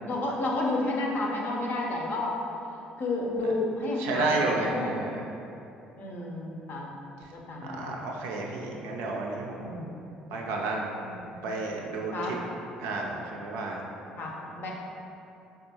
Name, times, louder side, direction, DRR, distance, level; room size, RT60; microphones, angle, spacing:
voice 1, 0.1-2.4 3.0-4.9 6.0-6.9 7.3-8.0 9.6-9.9 11.0-11.4 12.1-12.4 14.2-14.7, left 2 dB, 50° left, -2 dB, 0.5 m, -31 dB
voice 2, 4.0-5.3 7.6-9.7 10.3-10.9 11.4-12.4 12.8-13.8, right 2 dB, 70° right, -1 dB, 0.4 m, -31 dB
3.5 x 2.3 x 2.7 m, 2.8 s
hypercardioid pair, 50°, 4 cm